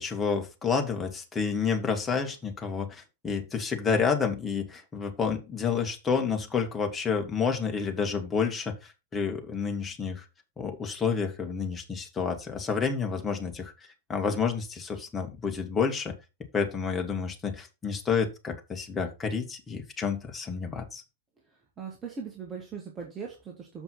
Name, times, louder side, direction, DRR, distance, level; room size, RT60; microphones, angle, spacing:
voice 1, 0.0-10.2 10.6-13.7 14.1-16.1 16.5-21.0, left 5 dB, 20° left, 3 dB, 2.0 m, -29 dB
voice 2, 21.8-23.8, right 6 dB, 20° right, 0 dB, 2.0 m, -39 dB
7.2 x 5.3 x 5.7 m, 0.28 s
figure-of-eight pair, 90°, 0 cm